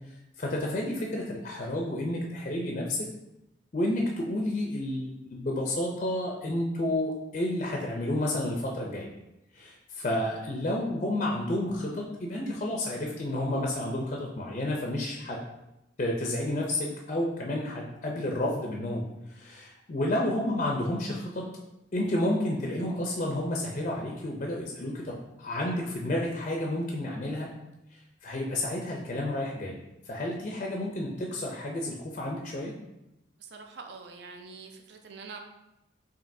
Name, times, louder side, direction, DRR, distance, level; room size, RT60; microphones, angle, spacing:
voice 1, 0.4-3.0 3.7-9.1 9.5-15.4 16.0-21.4 21.9-27.5 27.9-29.8 30.0-32.7, left 1 dB, 35° left, -1 dB, 0.4 m, -31 dB
voice 2, 33.4-35.4, right 4 dB, 60° right, 4 dB, 0.5 m, -45 dB
5.1 x 2.8 x 2.6 m, 0.92 s
head